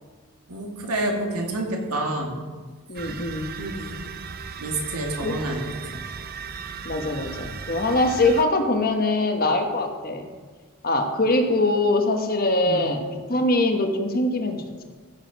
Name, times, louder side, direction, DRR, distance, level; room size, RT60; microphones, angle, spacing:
voice 1, 0.5-2.4 3.6-4.0 4.6-5.6 5.9-6.0 12.7-12.9, right 1 dB, 85° right, 1 dB, 2.1 m, -28 dB
voice 2, 2.9-3.5 5.2-5.3 6.8-10.3 10.8-14.8, left 2 dB, 40° left, 5 dB, 1.1 m, -23 dB
sound 1, 2.9-8.4, right 5 dB, 45° right, 0.6 m, -36 dB
15.0 x 7.3 x 5.3 m, 1.4 s
head